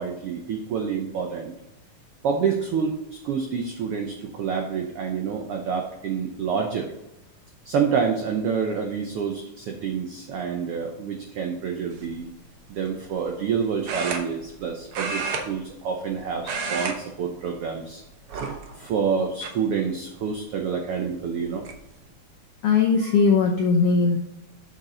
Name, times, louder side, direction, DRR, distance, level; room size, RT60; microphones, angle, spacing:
voice 1, 0.0-1.5 2.2-6.9 7.6-12.3 12.7-18.0 18.3-21.7 23.0-23.2, right 6 dB, 80° right, 3 dB, 1.2 m, -28 dB
sound 1, 11.9-12.2 13.9-14.6 14.9-16.1 16.4-17.0 17.3-17.5 18.3-18.9 19.4-19.5 21.0-21.1 21.4-21.8, right 4 dB, 65° right, 1.4 m, -30 dB
voice 2, 22.6-24.2, left 5 dB, 80° left, 2 dB, 1.3 m, -19 dB
7.4 x 6.5 x 3.8 m, 0.92 s
omnidirectional pair, 3.6 m